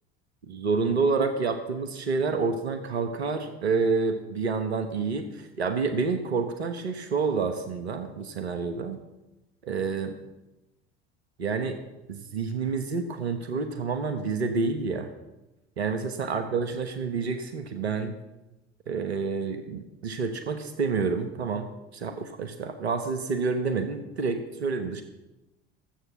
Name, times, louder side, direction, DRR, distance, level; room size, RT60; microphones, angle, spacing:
voice 1, 0.5-9.0 9.6-10.1 11.4-11.8 12.1-15.1 15.8-18.1 18.9-25.0, right 4 dB, 80° right, 7 dB, 1.1 m, -28 dB
13.0 x 7.9 x 7.2 m, 0.98 s
figure-of-eight pair, 65°, 32 cm